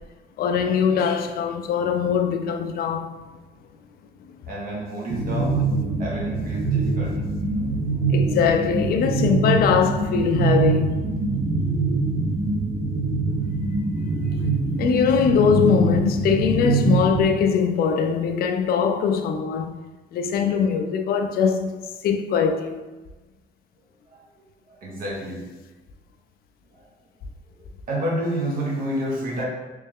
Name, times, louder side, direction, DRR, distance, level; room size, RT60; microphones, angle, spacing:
voice 1, 0.4-3.2 8.1-10.9 14.8-19.7 20.1-21.7 22.0-22.8, left 6 dB, 50° left, 0.4 m, -21 dB
voice 2, 4.5-5.6 6.0-7.2 7.9-8.3 24.1-24.3 24.7-25.4 26.7-26.9 27.6-29.5, right 1 dB, 45° right, 1.1 m, -30 dB
sound 1, 5.1-17.3, right 3 dB, 30° right, 0.5 m, -24 dB
3.2 x 3.2 x 3.5 m
cardioid pair, 165°, 20 cm